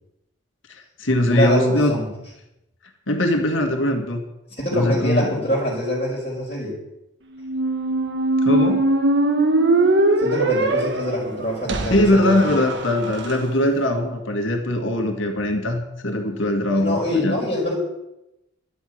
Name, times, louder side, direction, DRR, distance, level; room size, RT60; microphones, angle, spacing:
voice 1, 0.7-2.0 3.1-4.2 4.7-5.3 8.4-8.9 11.9-17.4, left 1 dB, 75° left, 4 dB, 2.0 m, -21 dB
voice 2, 1.3-2.1 4.6-6.7 10.2-12.6 16.7-17.7, left 1 dB, 30° left, -9 dB, 5.1 m, -24 dB
Squeak, 7.4-13.3, right 2 dB, 60° right, 1.4 m, -21 dB
12.0 x 8.3 x 9.5 m, 0.91 s
head